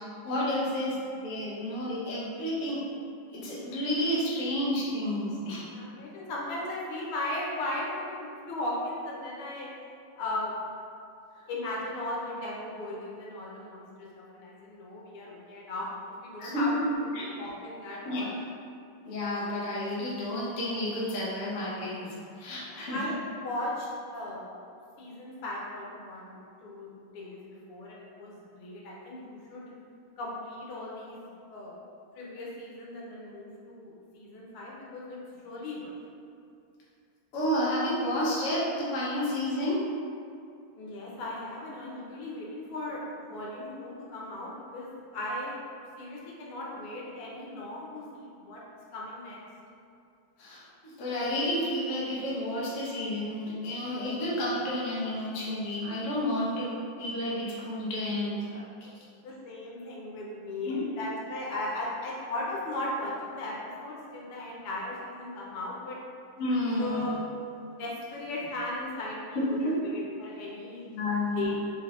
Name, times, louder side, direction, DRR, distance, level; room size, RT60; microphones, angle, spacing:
voice 1, 0.2-2.8 3.3-5.6 16.4-17.2 18.1-18.2 19.0-22.1 22.4-23.0 37.3-39.8 50.4-56.7 57.0-58.6 60.6-60.8 66.4-67.1 69.4-69.7 70.9-71.5, left 1 dB, 70° left, -6 dB, 0.7 m, -30 dB
voice 2, 5.7-9.7 10.1-10.5 11.5-18.3 22.9-23.2 23.4-23.9 24.1-24.5 25.0-29.7 30.2-31.8 32.1-35.9 40.7-45.6 46.0-48.6 48.9-49.4 59.2-66.0 66.8-67.2 67.8-70.9 71.4-71.5, left 1 dB, 90° left, -4 dB, 1.7 m, -37 dB
3.8 x 3.3 x 2.4 m, 2.4 s
omnidirectional pair, 2.4 m